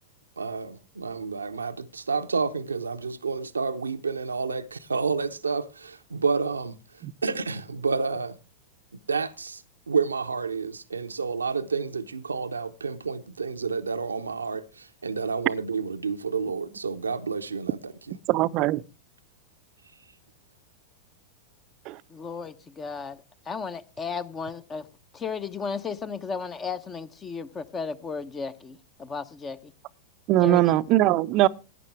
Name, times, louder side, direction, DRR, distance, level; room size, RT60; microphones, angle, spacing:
voice 1, 0.4-6.8 7.2-8.4 9.1-18.2, right 5 dB, 80° right, 0.7 m, -30 dB
voice 2, 18.3-18.8 21.9-22.0 30.3-31.5, right 15 dB, 40° right, 0.6 m, -21 dB
voice 3, 22.1-23.2 23.5-24.9 25.1-29.7 30.4-30.7, left 5 dB, 20° left, 0.8 m, -34 dB
17.0 x 9.9 x 3.4 m
figure-of-eight pair, 95°, 0 cm